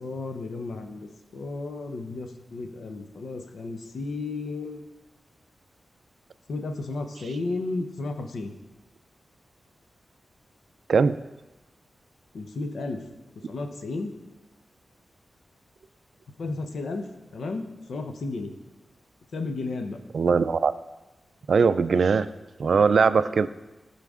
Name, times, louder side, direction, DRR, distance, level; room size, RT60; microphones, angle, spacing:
voice 1, 0.0-4.9 6.5-8.5 12.3-13.0 13.4-14.1 16.4-18.5 19.3-20.0, left 3 dB, 85° left, 5 dB, 0.9 m, -33 dB
voice 2, 20.1-20.7 21.5-22.3 22.6-23.5, right 5 dB, 65° right, 14 dB, 0.3 m, -20 dB
15.5 x 5.7 x 3.7 m, 1.1 s
wide cardioid pair, 125°, 0 cm